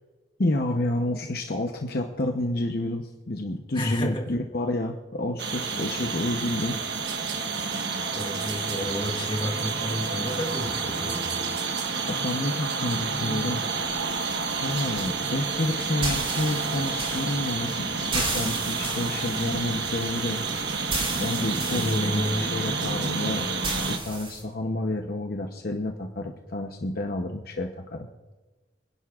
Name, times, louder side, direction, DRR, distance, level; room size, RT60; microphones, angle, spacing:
voice 1, 0.4-6.8 12.0-13.6 14.6-20.4 21.2-23.5 23.8-28.1, left 1 dB, 50° left, 3 dB, 0.8 m, -29 dB
voice 2, 3.7-4.4 8.2-11.3 21.4-22.5, left 1 dB, 25° left, 1 dB, 1.7 m, -31 dB
sound 1, 5.4-24.0, right 4 dB, 60° right, 1.3 m, -29 dB
sound 2, 13.0-24.4, right 2 dB, 30° right, 3.3 m, -35 dB
26.5 x 11.0 x 2.4 m, 1.2 s
head